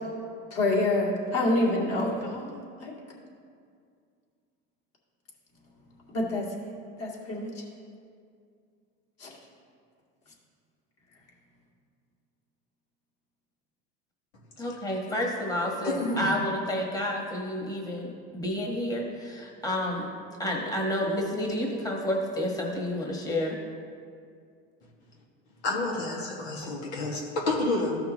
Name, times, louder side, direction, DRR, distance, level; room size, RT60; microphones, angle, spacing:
voice 1, 0.5-2.5 2.8-2.9 6.1-6.5 7.0-7.6 9.2-9.3, left 2 dB, 50° left, -3 dB, 2.3 m, -27 dB
voice 2, 14.6-20.1 20.4-23.6, left 1 dB, 10° left, -1 dB, 1.4 m, -30 dB
voice 3, 15.8-16.3 25.6-28.0, left 2 dB, 85° left, -2 dB, 1.8 m, -29 dB
14.0 x 5.7 x 3.0 m, 2.2 s
supercardioid pair, 105°, 31 cm